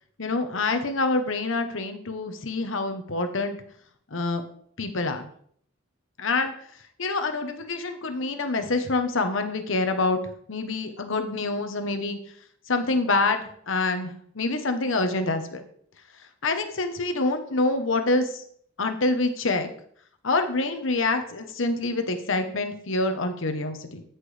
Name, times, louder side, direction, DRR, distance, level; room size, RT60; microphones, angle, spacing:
voice 1, 0.2-3.6 4.1-4.4 4.8-5.3 6.2-6.5 7.0-10.2 10.5-12.2 12.7-15.6 16.4-18.4 18.8-19.7 20.2-24.0, left 3 dB, 70° left, 7 dB, 1.1 m, -26 dB
13.0 x 6.0 x 3.4 m, 0.63 s
head